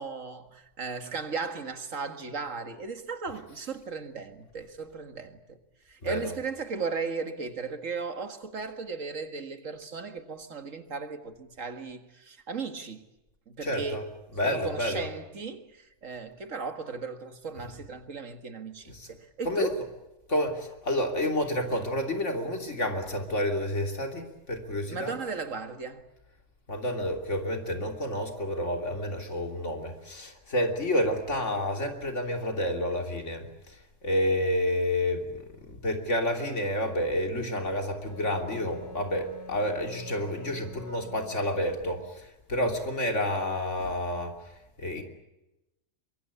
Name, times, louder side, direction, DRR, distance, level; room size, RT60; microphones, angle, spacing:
voice 1, 0.0-5.6 5.9-13.1 13.5-14.0 14.4-19.8 24.9-26.0, right 4 dB, 85° right, 2.2 m, -36 dB
voice 2, 6.0-6.4 13.6-14.0 14.3-15.1 18.9-19.1 19.4-19.9 20.3-25.2 26.7-44.3 44.8-45.0, left 1 dB, 70° left, 3.4 m, -30 dB
Wind instrument woodwind instrument, 38.1-42.1, equal, 50° left, 3.5 m, -45 dB
24.0 x 22.5 x 8.4 m
omnidirectional pair, 1.3 m